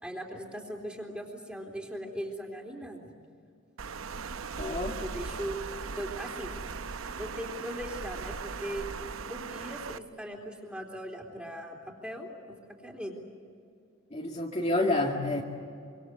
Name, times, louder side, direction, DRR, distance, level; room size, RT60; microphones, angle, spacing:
voice 1, 0.0-3.1 5.0-5.6 6.0-6.5 7.2-8.9 9.2-12.6 12.8-13.2, equal, 5° right, 0 dB, 3.6 m, -39 dB
Water, 3.8-10.0, right 5 dB, 75° right, 0.8 m, -38 dB
voice 2, 4.6-5.0 14.1-15.4, left 2 dB, 30° left, -1 dB, 2.1 m, -28 dB
26.0 x 25.5 x 8.1 m, 2.4 s
head